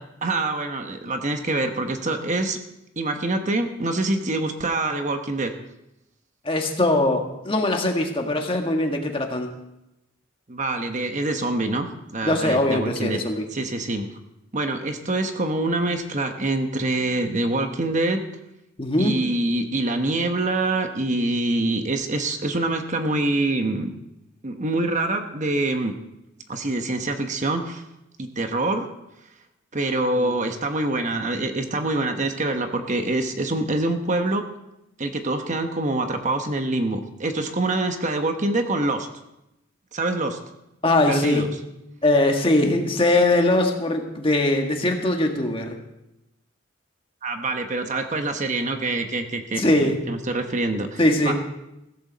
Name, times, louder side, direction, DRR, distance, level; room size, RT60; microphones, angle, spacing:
voice 1, 0.2-2.6 3.0-5.5 10.5-11.9 12.1-13.2 13.5-14.1 14.5-18.2 19.0-23.9 24.4-25.9 26.5-27.8 28.2-28.9 29.7-34.4 35.0-39.1 39.9-40.4 41.1-41.5 47.2-49.6 50.1-51.3, right 2 dB, 40° right, 6 dB, 1.1 m, -25 dB
voice 2, 6.4-9.5 12.2-13.4 18.8-19.2 30.2-30.3 40.8-41.5 42.0-45.8 49.6-50.0 51.0-51.3, left 2 dB, 25° left, 3 dB, 1.7 m, -21 dB
16.0 x 14.0 x 4.1 m, 0.88 s
head